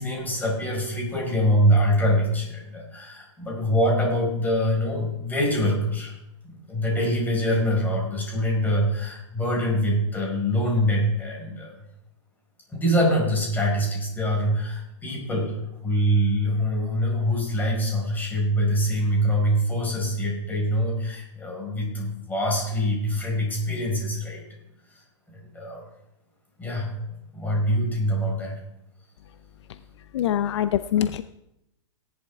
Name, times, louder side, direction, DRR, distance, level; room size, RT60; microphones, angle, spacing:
voice 1, 0.0-6.1 6.4-11.7 12.7-15.5 15.8-24.4 25.3-25.8 26.6-26.9 27.3-28.5, equal, 10° left, -2 dB, 5.1 m, -24 dB
voice 2, 30.1-31.2, left 10 dB, 60° left, 12 dB, 0.6 m, -23 dB
17.0 x 11.0 x 3.6 m, 0.84 s
hypercardioid pair, 145°, 16 cm